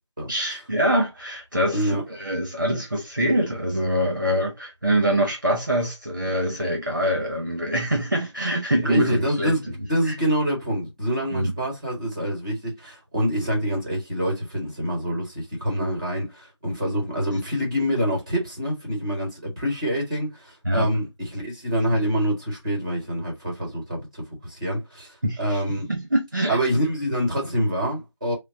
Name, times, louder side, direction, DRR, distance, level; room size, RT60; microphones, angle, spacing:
voice 1, 0.3-9.6 10.1-10.2 11.3-11.5 20.6-20.9 21.9-22.1 25.2-26.6, equal, 40° right, 0.9 m, -24 dB
voice 2, 1.7-2.0 8.8-25.9 26.5-28.3, equal, 15° right, 1.3 m, -26 dB
5.8 x 2.2 x 2.7 m
figure-of-eight pair, 170°, 15 cm